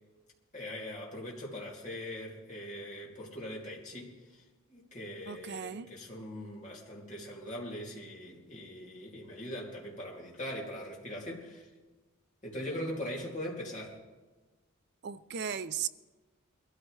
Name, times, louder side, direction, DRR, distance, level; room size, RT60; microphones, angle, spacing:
voice 1, 0.5-4.4 4.7-11.7 12.4-14.0, left 1 dB, 35° left, -3 dB, 2.7 m, -41 dB
voice 2, 5.3-5.9 15.0-15.9, right 8 dB, 50° right, 13 dB, 0.5 m, -36 dB
22.0 x 13.5 x 3.3 m, 1.2 s
head